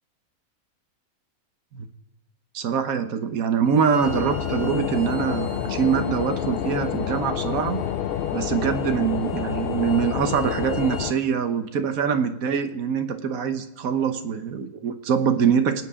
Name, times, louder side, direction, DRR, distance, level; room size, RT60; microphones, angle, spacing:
voice 1, 2.5-7.8 8.3-15.8, right 7 dB, 75° right, 9 dB, 1.4 m, -24 dB
Bowed string instrument, 3.6-11.1, equal, 20° right, 2.5 m, -47 dB
sound 1, 4.0-11.1, left 9 dB, 65° left, 0.6 m, -28 dB
25.5 x 9.4 x 3.7 m, 0.93 s
omnidirectional pair, 1.5 m